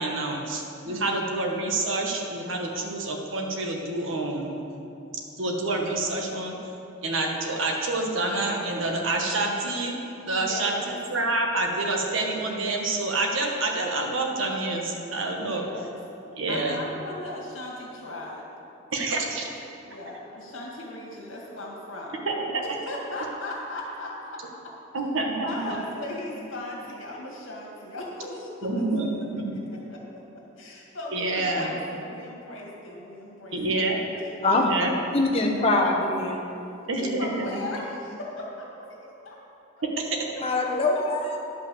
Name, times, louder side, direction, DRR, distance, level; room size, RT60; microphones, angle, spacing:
voice 1, 0.0-4.5 5.4-6.5 7.0-10.0 10.3-10.7 11.1-15.6 16.4-16.8 18.9-19.5 22.2-22.3 24.9-25.5 28.6-29.1 29.4-29.5 31.1-31.7 33.5-34.0 34.6-34.9 36.9-37.6 39.8-40.2, right 2 dB, 70° right, 1 dB, 1.4 m, -27 dB
voice 2, 0.8-1.3 10.4-11.0 15.5-16.0 16.4-18.5 18.9-19.4 19.8-22.2 22.6-24.4 25.3-28.8 29.5-30.2 30.6-34.3 37.0-39.4 40.3-40.7, left 1 dB, 70° left, -2 dB, 2.1 m, -38 dB
voice 3, 35.1-36.4 40.4-41.4, left 2 dB, 30° left, -1 dB, 1.1 m, -23 dB
10.5 x 5.7 x 6.9 m, 2.8 s
head